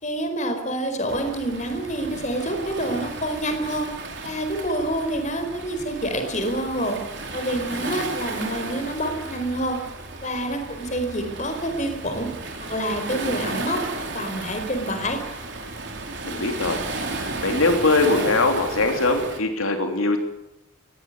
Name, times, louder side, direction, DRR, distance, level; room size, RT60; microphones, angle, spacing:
voice 1, 0.0-3.9 4.2-7.0 7.3-9.8 10.2-12.3 12.6-13.8 14.1-15.2, right 1 dB, 35° left, 6 dB, 4.5 m, -27 dB
Waves surf, 1.1-19.4, right 3 dB, 55° right, 4.5 m, -34 dB
voice 2, 16.2-16.8 17.4-20.2, left 2 dB, 80° left, 5 dB, 3.2 m, -21 dB
20.0 x 18.0 x 9.7 m, 0.85 s
head